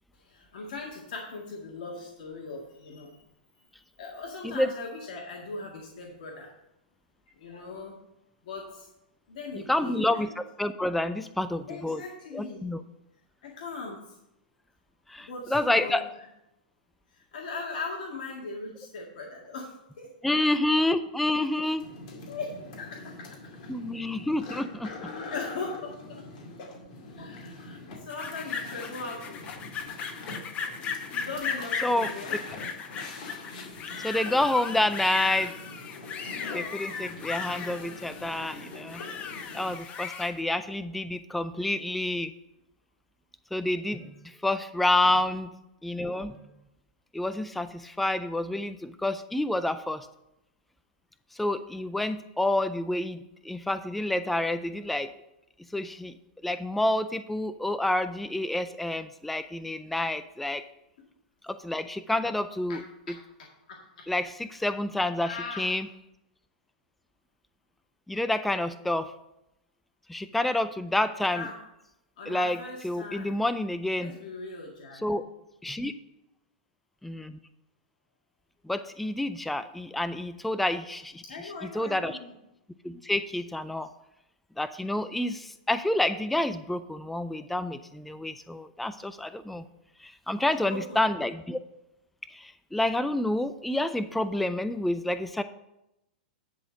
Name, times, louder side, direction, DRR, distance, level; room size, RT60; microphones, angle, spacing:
voice 1, 0.2-3.2 4.0-6.5 7.4-8.0 8.4-8.9 9.3-10.3 11.7-12.7 13.4-14.1 15.2-16.0 17.1-20.1 22.1-23.3 24.1-24.2 25.0-26.2 27.1-29.5 31.1-32.4 33.9-34.1 45.0-45.2 62.7-64.1 65.2-65.8 71.3-71.6 72.2-73.4 74.0-75.3 81.2-82.3 90.4-91.0, left 3 dB, 70° left, -1 dB, 1.8 m, -39 dB
voice 2, 9.7-12.0 12.3-12.8 15.1-16.1 20.2-21.9 23.7-25.1 31.8-32.1 34.0-35.5 36.5-39.0 39.5-42.3 43.5-45.5 45.8-46.4 47.1-50.1 51.3-55.1 55.7-56.1 56.4-60.6 61.4-62.8 63.1-63.2 64.1-65.9 68.1-69.1 70.1-71.5 72.3-72.6 72.8-74.2 75.0-75.2 75.6-75.9 77.0-77.4 78.6-82.2 82.8-83.9 84.6-89.6 90.0-91.6 92.3-95.4, left 1 dB, ahead, 11 dB, 0.3 m, -28 dB
sound 1, 21.8-39.8, left 3 dB, 55° left, 2.4 m, -44 dB
sound 2, 28.1-40.3, left 6 dB, 25° left, 0.9 m, -37 dB
10.5 x 4.1 x 6.3 m, 0.87 s
hypercardioid pair, 130°, 5 cm